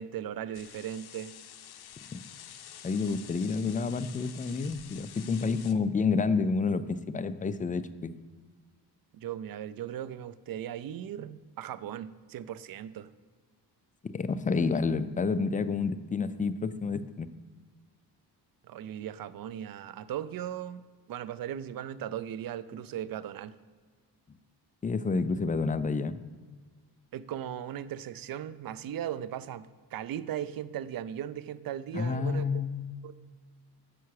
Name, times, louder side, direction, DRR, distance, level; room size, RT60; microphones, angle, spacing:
voice 1, 0.0-1.3 9.1-13.1 18.7-23.5 27.1-32.4 33.0-33.1, right 10 dB, 55° right, 16 dB, 0.5 m, -38 dB
sound 1, 0.5-5.7, left 10 dB, 60° left, 0.6 m, -48 dB
voice 2, 2.8-8.1 14.0-17.3 24.8-26.2 31.9-32.8, left 4 dB, 20° left, 12 dB, 0.3 m, -29 dB
6.9 x 5.7 x 4.7 m, 1.5 s
cardioid pair, 75°, 43 cm